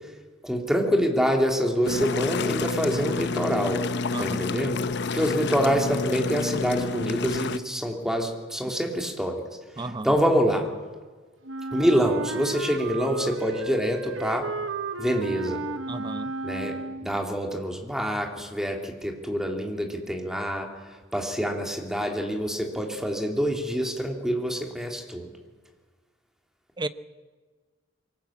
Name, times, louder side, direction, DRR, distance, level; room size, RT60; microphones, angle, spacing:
voice 1, 0.4-3.8 4.2-4.8 5.1-9.4 9.8-10.6 11.7-14.5 15.0-15.6 16.4-16.7 17.0-20.7 21.1-25.3, equal, 5° right, 2 dB, 3.0 m, -26 dB
sound 1, 1.8-7.6, left 4 dB, 60° left, 0.8 m, -29 dB
voice 2, 9.8-10.2 15.9-16.3 26.8-26.9, right 2 dB, 25° right, 13 dB, 0.8 m, -33 dB
Wind instrument woodwind instrument, 11.4-17.3, right 3 dB, 75° right, 1.1 m, -33 dB
23.5 x 19.0 x 8.7 m, 1.4 s
head